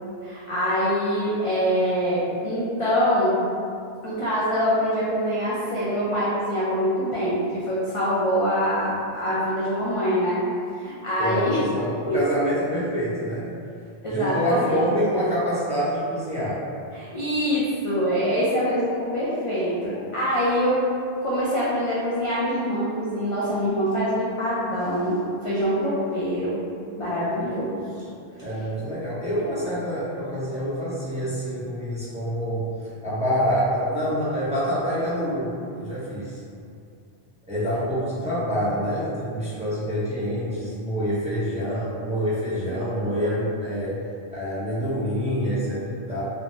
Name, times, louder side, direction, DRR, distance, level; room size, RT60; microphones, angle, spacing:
voice 1, 0.2-3.4 4.0-10.4 10.8-11.6 14.0-14.8 16.9-20.8 21.2-26.6 27.0-28.1, equal, 45° left, -9 dB, 0.4 m, -24 dB
voice 2, 11.2-13.5 14.1-16.6 28.4-32.7 33.0-36.4 37.5-44.0 44.3-46.2, equal, 10° right, -11 dB, 0.5 m, -26 dB
3.2 x 2.0 x 2.7 m, 2.5 s
omnidirectional pair, 1.1 m